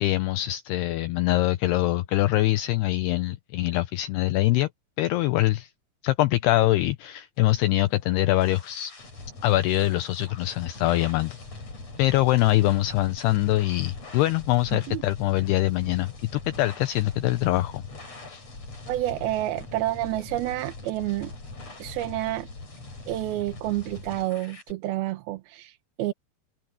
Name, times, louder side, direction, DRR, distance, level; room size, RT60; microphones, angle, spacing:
voice 1, 0.0-4.7 5.0-5.7 6.0-8.9 9.4-11.4 12.0-17.8 18.3-18.4, left 16 dB, 90° left, 2.3 m, -23 dB
sound 1, 7.7-24.7, left 3 dB, 35° left, 7.4 m, -42 dB
voice 2, 14.7-15.0 18.9-21.3 21.8-22.5 23.1-26.1, right 15 dB, 75° right, 2.3 m, -29 dB
open air
omnidirectional pair, 5.4 m